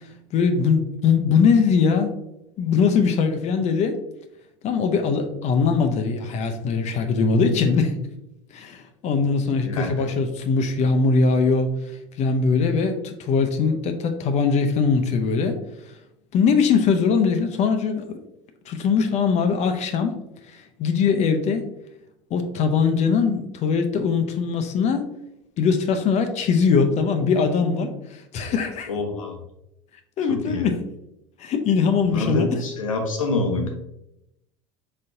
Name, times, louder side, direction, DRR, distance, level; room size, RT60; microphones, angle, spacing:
voice 1, 0.3-2.2 2.6-4.0 4.6-7.9 8.5-11.7 12.2-15.6 16.3-18.2 18.7-21.7 22.3-25.1 25.6-28.9 30.2-30.8 31.4-32.5, left 5 dB, 40° left, 6 dB, 0.6 m, -21 dB
voice 2, 9.6-10.1 28.9-29.4 30.3-30.7 32.1-33.8, left 2 dB, 90° left, 3 dB, 0.9 m, -26 dB
4.1 x 3.9 x 2.6 m, 0.84 s
hypercardioid pair, 80°, 17 cm